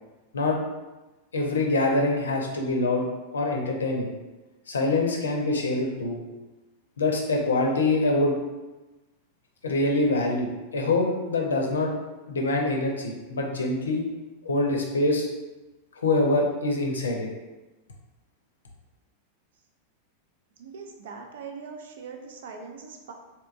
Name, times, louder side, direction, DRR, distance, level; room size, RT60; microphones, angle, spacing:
voice 1, 1.3-3.0 3.3-4.1 4.7-6.2 7.0-8.4 9.6-12.0 12.3-14.0 14.4-15.3 16.0-17.3, left 2 dB, 70° left, 1 dB, 0.5 m, -25 dB
voice 2, 20.6-23.1, right 5 dB, 60° right, 3 dB, 0.4 m, -41 dB
3.4 x 2.8 x 2.5 m, 1.1 s
figure-of-eight pair, 90°, 0 cm